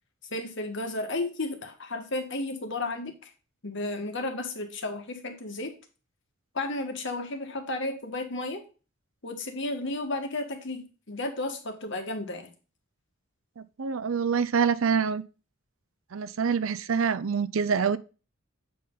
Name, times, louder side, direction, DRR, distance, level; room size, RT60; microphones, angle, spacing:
voice 1, 0.3-3.3 3.6-5.8 6.5-8.6 9.2-12.5, left 2 dB, 60° left, 1.6 m, -33 dB
voice 2, 13.6-15.2 16.1-18.0, right 6 dB, 75° right, 0.5 m, -26 dB
7.7 x 5.2 x 3.8 m
head